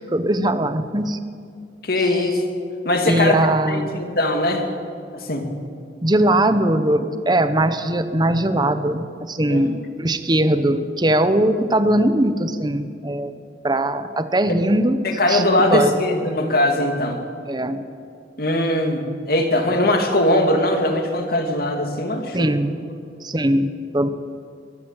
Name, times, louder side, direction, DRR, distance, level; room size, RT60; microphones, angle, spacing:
voice 1, 0.1-1.2 3.0-4.0 6.0-13.3 13.6-16.0 17.5-17.8 22.3-22.7 23.2-24.1, right 1 dB, 25° right, 11 dB, 1.0 m, -20 dB
voice 2, 1.8-2.4 2.8-3.4 3.7-4.7 5.1-5.5 9.5-9.6 15.0-17.2 18.4-22.5, left 1 dB, 55° left, 4 dB, 2.6 m, -20 dB
22.5 x 13.5 x 9.0 m, 2.4 s
head